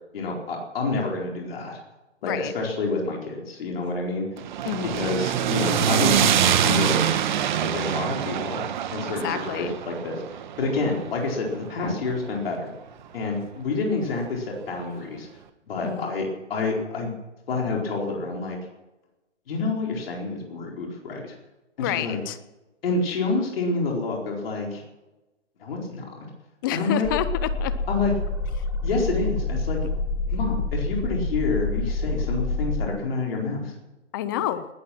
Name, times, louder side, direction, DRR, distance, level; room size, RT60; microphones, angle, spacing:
voice 1, 0.1-1.8 2.2-4.3 4.8-7.1 7.6-8.6 8.9-12.7 13.1-15.3 15.7-17.1 17.5-18.6 19.5-21.3 21.8-22.2 22.8-24.8 25.6-26.0 26.7-27.1 27.9-28.1 28.8-29.8 30.3-33.7, left 3 dB, 55° left, -1 dB, 4.5 m, -28 dB
sound 1, 4.4-12.6, right 9 dB, 40° right, 1.3 m, -25 dB
voice 2, 4.7-5.1 9.1-9.7 15.8-16.1 21.8-22.4 26.6-27.7 34.1-34.7, left 11 dB, 20° left, 13 dB, 0.6 m, -29 dB
sound 2, 27.0-32.8, left 2 dB, 10° right, 2.0 m, -27 dB
19.5 x 12.0 x 6.1 m, 1.0 s
hypercardioid pair, 145°, 36 cm